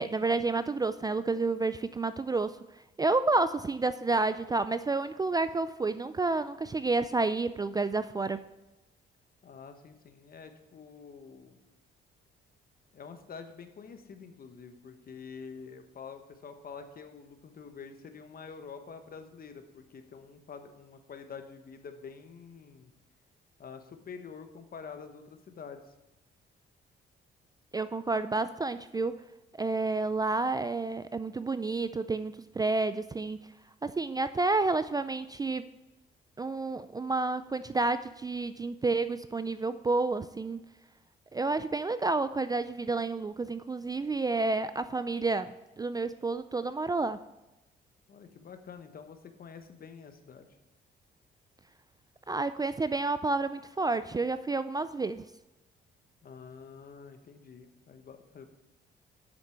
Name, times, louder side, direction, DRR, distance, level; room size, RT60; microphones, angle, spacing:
voice 1, 0.0-2.6 3.0-8.4 27.7-29.2 29.5-33.4 33.8-35.7 36.4-40.6 41.3-47.2 52.3-55.2, right 3 dB, 20° right, 12 dB, 0.3 m, -30 dB
voice 2, 9.4-11.6 12.9-22.9 23.6-25.9 48.1-50.5 56.2-58.5, left 6 dB, 50° left, 8 dB, 1.1 m, -47 dB
8.0 x 6.5 x 5.7 m, 0.99 s
cardioid pair, 90°, 20 cm